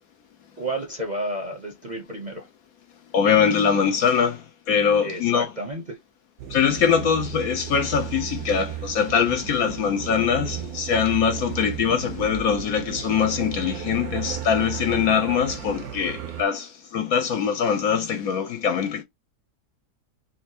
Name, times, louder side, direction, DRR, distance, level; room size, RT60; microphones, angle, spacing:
voice 1, 0.6-2.5 5.0-6.0, right 1 dB, 40° right, 0.6 m, -31 dB
voice 2, 3.1-5.5 6.5-19.0, left 7 dB, 65° left, 1.0 m, -23 dB
sound 1, 6.4-16.4, right 10 dB, 70° right, 1.0 m, -34 dB
4.2 x 2.5 x 2.8 m
omnidirectional pair, 1.8 m